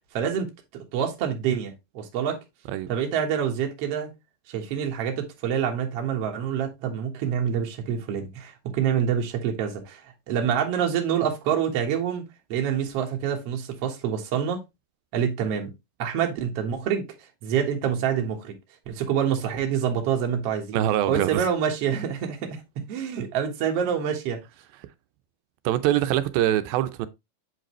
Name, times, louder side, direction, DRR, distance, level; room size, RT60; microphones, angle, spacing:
voice 1, 0.1-2.4 2.9-4.1 4.5-12.2 12.5-14.6 15.1-15.7 16.0-17.1 17.4-18.5 18.9-20.8 21.1-24.4, right 8 dB, 55° right, 1.9 m, -27 dB
voice 2, 20.7-21.5 25.6-27.1, right 12 dB, 85° right, 2.4 m, -23 dB
8.1 x 5.1 x 3.0 m
omnidirectional pair, 4.3 m